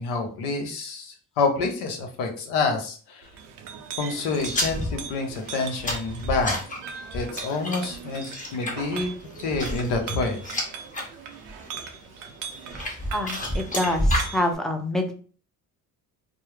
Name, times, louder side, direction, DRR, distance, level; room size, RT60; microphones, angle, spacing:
voice 1, 0.0-3.3 4.0-6.6 7.1-8.3 8.5-9.1 9.4-10.4, left 3 dB, 80° left, 3 dB, 0.8 m, -27 dB
Chink clink, 3.2-14.5, right 7 dB, 85° right, 0.5 m, -40 dB
sound 1, 4.4-11.1 11.4-11.9 12.5-14.3, left 1 dB, 20° left, 0.9 m, -30 dB
voice 2, 13.1-15.1, left 1 dB, ahead, 3 dB, 0.5 m, -26 dB
2.2 x 2.0 x 3.0 m, 0.41 s
supercardioid pair, 60°, 39 cm